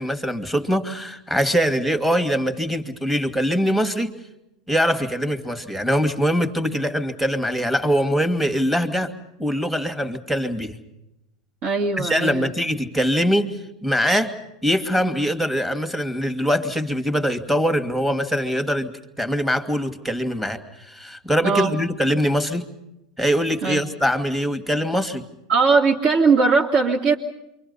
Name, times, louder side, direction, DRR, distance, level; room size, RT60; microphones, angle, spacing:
voice 1, 0.0-4.1 4.7-9.1 9.4-10.8 12.0-14.3 14.6-22.7 23.2-25.2, equal, 5° right, 8 dB, 2.4 m, -23 dB
voice 2, 11.6-12.5 21.4-21.7 23.6-23.8 25.5-27.1, right 4 dB, 50° right, -2 dB, 2.6 m, -19 dB
28.5 x 25.0 x 5.6 m, 0.90 s
hypercardioid pair, 85°, 3 cm